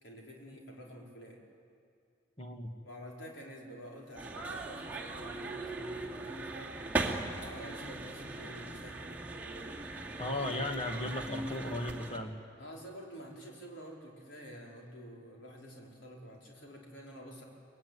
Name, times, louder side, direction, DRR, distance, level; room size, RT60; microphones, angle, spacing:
voice 1, 0.0-1.4 2.8-6.8 7.4-9.2 12.6-17.4, equal, 75° left, -2 dB, 4.9 m, -49 dB
voice 2, 2.4-2.7 10.2-12.3, left 1 dB, 30° left, 3 dB, 2.0 m, -36 dB
sound 1, 4.1-12.2, right 2 dB, 10° right, 2.4 m, -39 dB
25.0 x 20.5 x 9.6 m, 2.4 s
head